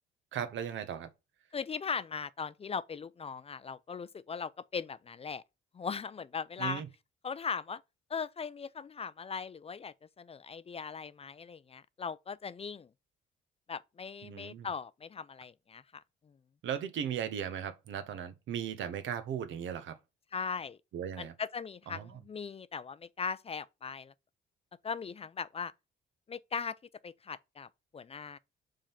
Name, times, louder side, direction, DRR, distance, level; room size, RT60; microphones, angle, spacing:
voice 1, 0.3-1.1 6.6-6.9 14.2-14.7 16.6-20.0 20.9-21.3 21.9-22.1, right 8 dB, 75° right, 1.1 m, -37 dB
voice 2, 1.5-5.4 5.7-6.8 7.2-7.8 8.1-12.9 13.7-16.0 20.3-20.8 21.2-24.1 24.8-25.7 26.3-26.8 27.0-27.7 27.9-28.4, left 5 dB, 30° left, 0.4 m, -39 dB
5.0 x 3.8 x 5.7 m
cardioid pair, 90°, 20 cm